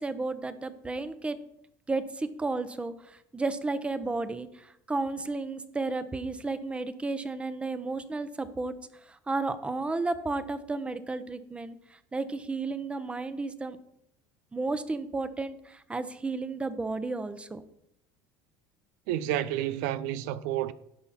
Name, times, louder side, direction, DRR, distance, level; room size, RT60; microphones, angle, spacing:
voice 1, 0.0-1.4 1.9-8.7 9.0-13.8 14.5-17.6, right 3 dB, 15° right, 0.9 m, -33 dB
voice 2, 19.1-20.7, right 12 dB, 80° right, 0.5 m, -30 dB
16.5 x 5.8 x 4.2 m
supercardioid pair, 110°, 8 cm